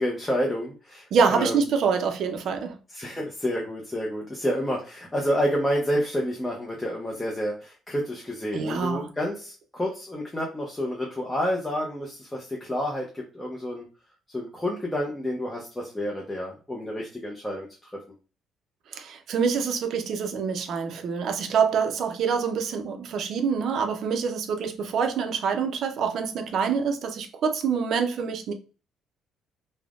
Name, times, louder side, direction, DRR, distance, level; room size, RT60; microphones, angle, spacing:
voice 1, 0.0-1.6 2.9-13.8 14.3-17.9, equal, 10° left, 0.5 m, -29 dB
voice 2, 1.1-2.8 8.5-9.1 18.9-28.5, right 6 dB, 55° right, 0.4 m, -26 dB
3.4 x 2.0 x 2.3 m
cardioid pair, 165°, 0 cm